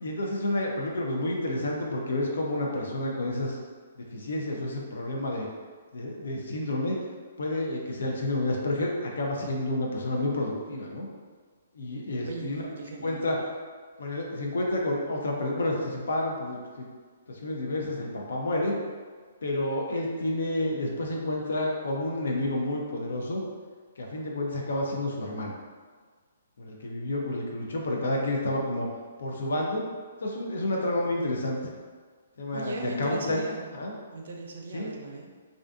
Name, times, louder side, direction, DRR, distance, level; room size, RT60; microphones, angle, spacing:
voice 1, 0.0-3.6 4.0-5.5 5.9-7.0 7.4-11.1 11.7-12.6 13.0-13.4 14.0-16.9 17.3-18.8 19.4-23.4 24.0-25.5 26.6-28.9 29.2-29.8 30.2-31.6 32.4-33.4 33.7-33.9 34.7-34.9, left 1 dB, 75° left, -1 dB, 0.4 m, -30 dB
voice 2, 12.3-13.2 32.5-35.3, right 2 dB, 70° right, 1 dB, 0.4 m, -38 dB
2.5 x 2.4 x 2.3 m, 1.5 s
hypercardioid pair, 145°, 0 cm